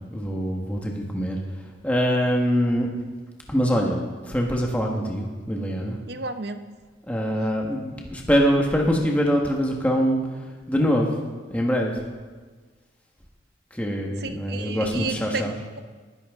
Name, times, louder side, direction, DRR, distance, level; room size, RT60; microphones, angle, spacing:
voice 1, 0.1-1.4 1.8-2.9 3.5-6.0 7.1-10.2 10.7-11.2 11.5-12.0 13.7-15.6, equal, 5° left, 0 dB, 1.3 m, -24 dB
voice 2, 6.1-6.6 14.2-15.8, right 3 dB, 55° right, 9 dB, 0.7 m, -32 dB
21.0 x 10.5 x 3.7 m, 1.4 s
head